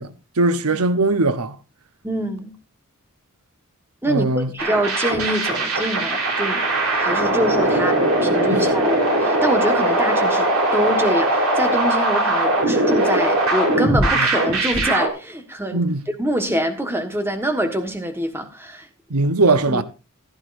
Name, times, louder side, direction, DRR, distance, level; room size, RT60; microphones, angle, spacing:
voice 1, 0.0-1.6 4.1-4.5 8.5-8.6 14.2-14.3 15.7-16.0 19.1-19.8, right 2 dB, 85° right, 1.0 m, -20 dB
voice 2, 2.0-2.5 4.0-6.6 6.9-15.8 16.1-18.9 19.7-19.8, equal, 10° right, 1.4 m, -25 dB
sound 1, 4.6-15.1, right 1 dB, 65° right, 3.8 m, -20 dB
15.5 x 12.0 x 2.6 m
head